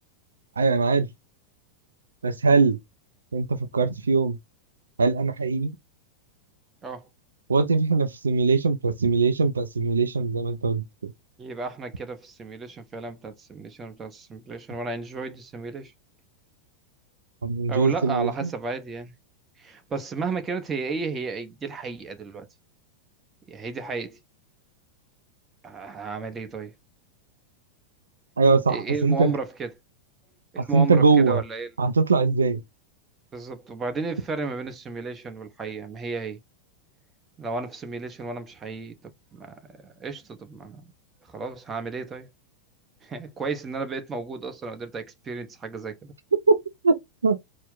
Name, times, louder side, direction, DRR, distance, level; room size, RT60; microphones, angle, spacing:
voice 1, 0.6-1.1 2.2-2.8 3.3-4.4 5.0-5.7 7.5-11.1 17.4-18.5 28.4-29.3 30.6-31.4 31.8-32.6 46.5-46.6 46.8-46.9 47.2-47.4, right 4 dB, 75° right, 0.5 m, -21 dB
voice 2, 11.4-15.9 17.7-19.1 19.6-22.5 23.5-24.2 25.6-26.7 28.7-29.7 30.5-31.7 33.3-36.4 37.4-40.9 41.3-42.3 43.0-46.1, right 4 dB, 20° right, 0.9 m, -33 dB
4.4 x 2.1 x 3.8 m
figure-of-eight pair, 90°, 0 cm